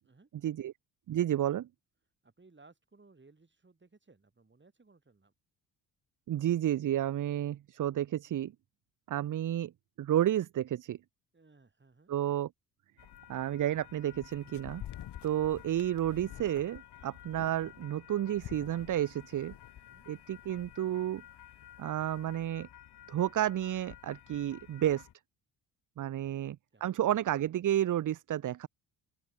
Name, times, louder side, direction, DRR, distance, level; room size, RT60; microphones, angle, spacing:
voice 1, 1.1-1.7 6.3-8.5 9.1-9.7 10.0-11.0 12.1-12.5 13.3-14.8 15.2-19.5 20.1-21.2 21.8-22.7 23.1-25.1 26.0-26.6 26.8-28.7, right 12 dB, 40° right, 0.7 m, -31 dB
voice 2, 2.2-5.3 11.3-12.1 19.7-20.1 26.7-27.2, right 3 dB, 25° right, 4.9 m, -62 dB
sound 1, 13.0-25.1, left 11 dB, 55° left, 1.7 m, -50 dB
open air
hypercardioid pair, 55°, 48 cm